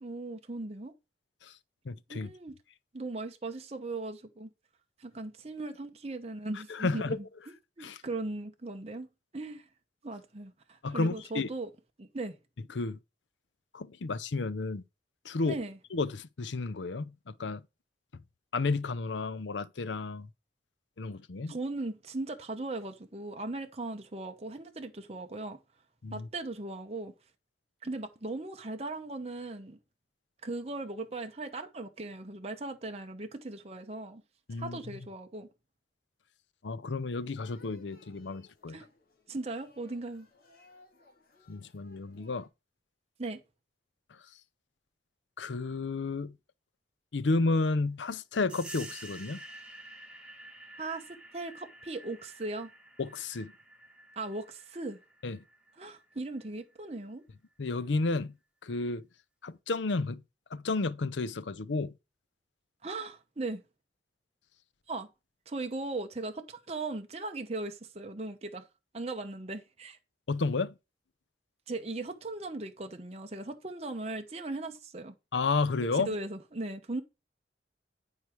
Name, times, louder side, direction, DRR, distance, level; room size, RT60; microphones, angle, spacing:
voice 1, 0.0-0.9 2.1-2.5 2.9-4.5 5.0-7.2 7.8-9.1 9.3-9.6 10.0-11.7 12.0-12.3 15.4-15.8 21.5-25.6 26.1-27.1 27.8-29.8 30.4-34.2 34.6-35.5 38.7-38.9 39.3-40.3 43.2-43.4 50.8-52.7 54.2-55.0 55.8-57.2 62.8-63.6 64.9-65.1 65.5-68.6 68.9-70.0 71.7-75.1 75.9-77.0, right 2 dB, 35° right, 0.9 m, -38 dB
voice 2, 1.8-2.3 6.7-7.2 7.8-8.0 10.8-11.5 12.7-13.0 13.7-14.8 15.2-15.6 15.9-17.6 18.5-20.3 21.0-21.5 26.0-26.3 34.5-34.8 36.6-38.9 41.5-42.5 45.4-46.4 47.1-49.4 53.0-53.5 55.2-55.4 57.6-58.3 58.6-59.0 59.4-60.2 60.5-61.9 70.3-70.7 75.3-76.1, left 3 dB, 85° left, 0.6 m, -32 dB
sound 1, 37.2-42.5, left 3 dB, 50° left, 2.5 m, -61 dB
sound 2, 48.5-56.8, right 1 dB, 5° right, 1.4 m, -50 dB
9.5 x 4.9 x 4.5 m
head